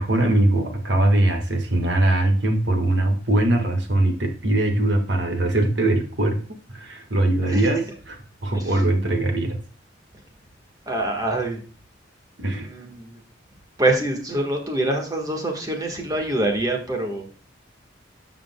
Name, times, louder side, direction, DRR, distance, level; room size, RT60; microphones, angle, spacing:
voice 1, 0.0-6.4 6.7-9.6 12.4-12.7, right 1 dB, 65° right, 4 dB, 1.6 m, -21 dB
voice 2, 8.5-8.8 10.9-11.6 12.5-13.2 13.8-17.3, right 1 dB, 20° right, 2 dB, 1.5 m, -25 dB
13.5 x 5.1 x 2.2 m, 0.37 s
head